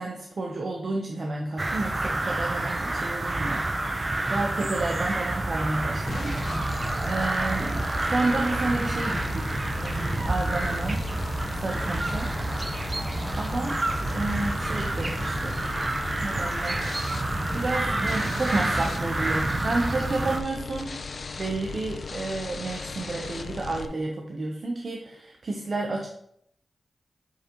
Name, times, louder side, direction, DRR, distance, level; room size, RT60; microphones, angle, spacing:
voice 1, 0.0-6.5 7.1-11.0 11.5-12.3 13.4-13.7 14.1-15.6 16.2-16.8 17.5-21.0 21.4-26.1, right 2 dB, 60° right, 1 dB, 0.8 m, -31 dB
sound 1, 1.6-20.4, right 2 dB, 35° right, 0.6 m, -28 dB
sound 2, 6.1-23.9, left 4 dB, 65° left, 0.4 m, -37 dB
6.8 x 5.0 x 3.0 m, 0.69 s
cardioid pair, 45°, 0 cm